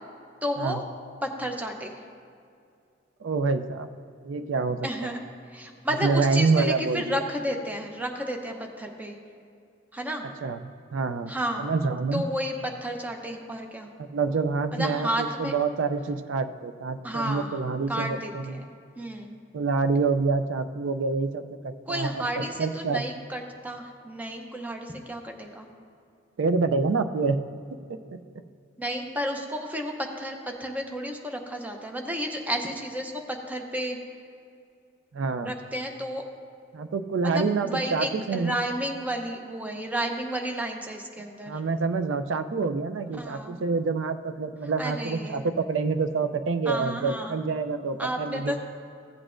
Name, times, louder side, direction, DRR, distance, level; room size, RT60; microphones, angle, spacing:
voice 1, 0.4-0.8 1.2-1.9 4.8-5.2 5.5-9.2 9.9-10.2 11.3-11.7 12.1-12.5 12.8-13.9 14.7-15.5 17.0-17.5 17.9-18.6 19.0-19.4 21.9-25.7 28.8-34.0 35.4-36.2 37.2-41.6 43.2-43.6 44.8-45.4 46.7-47.3 48.0-48.6, equal, 10° right, 3 dB, 0.7 m, -32 dB
voice 2, 3.2-3.9 4.2-4.9 6.0-7.2 10.4-11.3 11.6-12.2 14.0-18.6 19.5-23.0 26.4-27.4 28.1-28.2 35.1-35.5 36.7-38.6 41.5-48.6, right 4 dB, 70° right, 9 dB, 0.4 m, -27 dB
15.0 x 8.0 x 2.5 m, 2.4 s
head